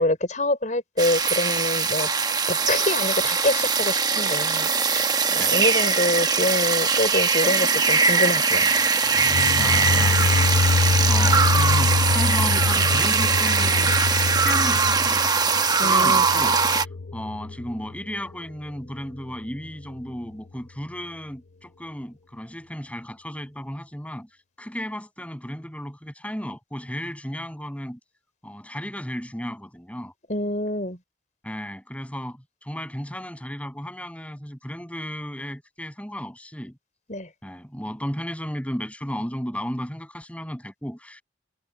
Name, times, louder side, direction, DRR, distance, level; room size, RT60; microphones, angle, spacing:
voice 1, 0.0-2.1 2.5-8.7 15.8-16.2 30.3-31.0 37.1-37.3, left 1 dB, 45° left, 5.3 m, -26 dB
sound 1, 1.0-16.9, right 5 dB, 20° right, 1.0 m, -21 dB
voice 2, 5.4-5.7 8.5-8.9 9.6-13.9 14.3-24.3 24.6-28.0 28.4-30.1 31.4-36.8 37.4-41.2, equal, 10° left, 7.2 m, -34 dB
sound 2, 9.1-18.0, left 3 dB, 75° left, 0.6 m, -25 dB
head